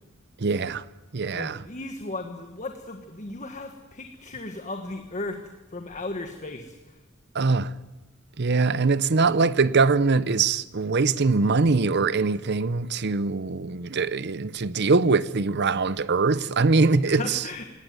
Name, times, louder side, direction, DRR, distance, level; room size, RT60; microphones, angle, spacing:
voice 1, 0.4-0.8 1.1-1.6 7.3-7.7 8.4-17.4, right 4 dB, 55° right, 0.7 m, -22 dB
voice 2, 1.2-6.7 17.0-17.7, left 2 dB, 35° left, 1.5 m, -36 dB
20.0 x 18.0 x 9.4 m
head